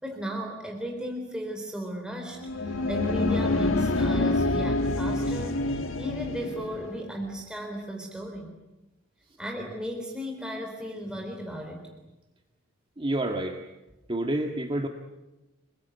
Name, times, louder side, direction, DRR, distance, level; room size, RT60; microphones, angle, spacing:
voice 1, 0.0-8.5 9.4-11.8, equal, 5° right, 1 dB, 3.6 m, -36 dB
sound 1, 2.3-7.0, left 2 dB, 85° left, 1.7 m, -27 dB
voice 2, 13.0-13.6 14.1-14.9, right 1 dB, 25° right, 3 dB, 1.8 m, -28 dB
28.5 x 21.0 x 9.4 m, 1.0 s
head